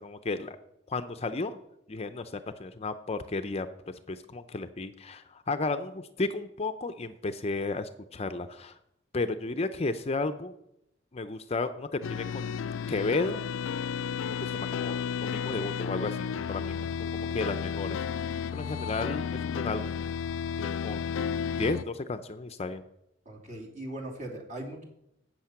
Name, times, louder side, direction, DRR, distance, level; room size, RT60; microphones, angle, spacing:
voice 1, 0.0-0.6 0.9-1.6 1.9-3.7 4.1-8.8 9.1-10.5 11.1-12.6 12.9-13.4 14.2-18.0 18.5-19.9 20.6-21.1 21.6-22.8, left 3 dB, 35° left, 11 dB, 0.5 m, -33 dB
sound 1, 12.0-21.8, left 7 dB, 80° left, 0.3 m, -32 dB
voice 2, 23.2-24.8, right 1 dB, 40° right, 0 dB, 2.7 m, -40 dB
12.5 x 8.4 x 5.8 m, 0.81 s
head